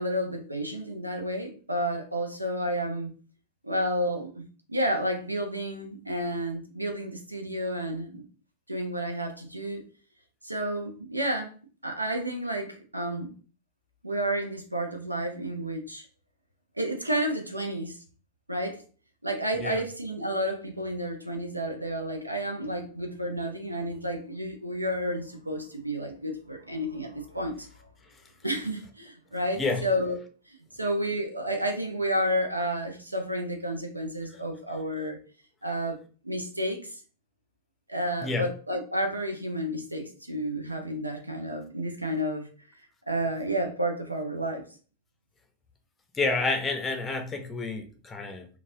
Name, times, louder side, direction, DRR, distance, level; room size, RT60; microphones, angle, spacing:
voice 1, 0.0-3.1 3.6-8.2 8.7-9.9 10.4-11.5 11.8-13.3 14.0-16.0 16.8-18.0 18.5-18.8 19.2-27.7 28.4-30.2 30.7-35.2 35.6-37.0 37.9-42.5 43.1-44.6, equal, 85° right, 0.6 m, -31 dB
voice 2, 46.1-48.5, left 3 dB, 15° left, 0.6 m, -29 dB
3.9 x 2.3 x 2.6 m
figure-of-eight pair, 90°, 0 cm